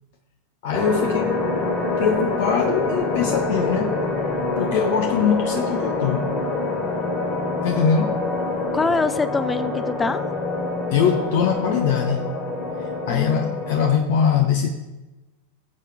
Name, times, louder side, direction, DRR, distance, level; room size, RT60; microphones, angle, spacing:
voice 1, 0.6-1.4 2.0-4.0 4.6-6.3 7.6-8.2 10.9-12.3 12.8-14.7, left 7 dB, 50° left, 5 dB, 0.9 m, -22 dB
sound 1, 0.7-14.0, left 3 dB, 35° left, 3.7 m, -25 dB
voice 2, 8.7-10.2 13.1-13.6, left 4 dB, 15° left, 14 dB, 0.4 m, -24 dB
18.5 x 7.5 x 3.5 m, 1.1 s
figure-of-eight pair, 90°, 0 cm